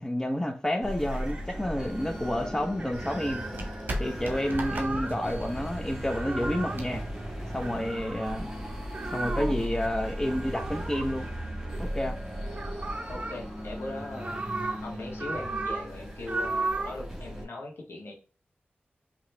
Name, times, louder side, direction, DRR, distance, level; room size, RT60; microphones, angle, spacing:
voice 1, 0.0-3.4 4.0-7.0 7.5-8.5 9.1-11.3 11.8-12.2, left 1 dB, 15° left, 0.8 m, -30 dB
sound 1, 0.8-17.5, equal, 10° right, 1.5 m, -37 dB
sound 2, 1.1-2.1 2.8-3.5 4.1-5.1 6.0-6.8 7.6-8.4 8.9-9.7 10.5-12.1 12.4-13.4 13.9-14.8 15.1-15.9 16.2-17.0, right 3 dB, 35° right, 0.9 m, -35 dB
sound 3, 2.1-8.0, right 1 dB, 55° right, 1.2 m, -39 dB
voice 2, 13.1-14.4 14.8-18.1, left 2 dB, 85° left, 1.5 m, -40 dB
4.7 x 3.0 x 3.3 m
cardioid pair, 60°, 4 cm